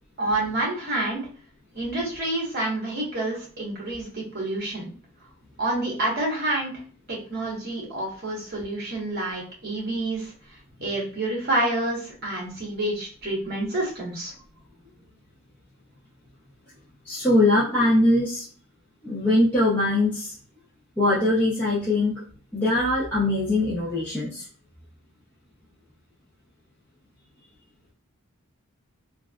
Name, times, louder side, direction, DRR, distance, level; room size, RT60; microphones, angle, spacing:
voice 1, 0.2-1.2 1.7-4.9 5.6-6.7 7.1-10.3 10.8-14.3, right 2 dB, 45° right, -3 dB, 1.2 m, -28 dB
voice 2, 17.0-18.4 19.0-20.3 21.0-22.2 22.5-24.5, left 1 dB, 10° left, -10 dB, 0.7 m, -22 dB
3.2 x 2.4 x 2.3 m, 0.42 s
head